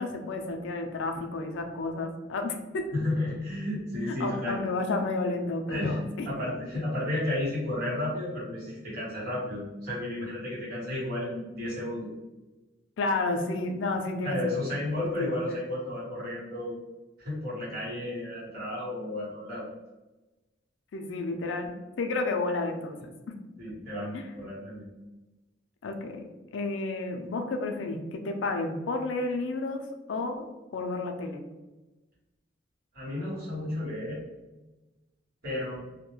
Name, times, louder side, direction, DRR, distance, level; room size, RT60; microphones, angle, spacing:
voice 1, 0.0-2.9 4.1-6.3 13.0-14.5 15.2-15.6 20.9-23.0 24.1-24.3 25.8-30.4 30.7-31.4, left 3 dB, 90° left, 4 dB, 0.4 m, -31 dB
voice 2, 2.9-4.6 5.7-6.0 6.2-12.1 14.2-16.8 17.2-19.6 23.6-24.8 32.9-34.2 35.4-35.7, left 1 dB, 50° right, -8 dB, 1.2 m, -32 dB
2.3 x 2.1 x 3.0 m, 1.1 s
head